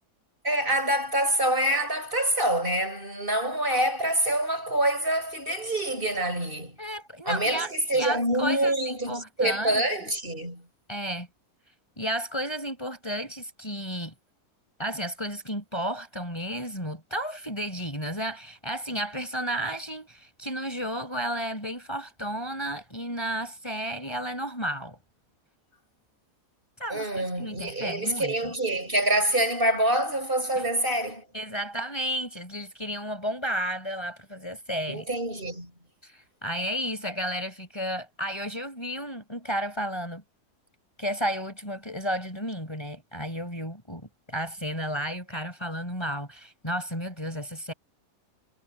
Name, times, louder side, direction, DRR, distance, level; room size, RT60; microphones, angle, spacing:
voice 1, 0.4-6.8 7.2-10.6 26.9-31.2 34.9-35.7, right 1 dB, 30° right, 6.4 m, -26 dB
voice 2, 6.8-9.8 10.9-11.3 12.0-14.1 14.8-25.0 26.8-28.5 30.6-30.7 31.3-35.1 36.0-40.2 41.0-47.7, equal, 15° left, 5.3 m, -33 dB
omnidirectional pair, 1.7 m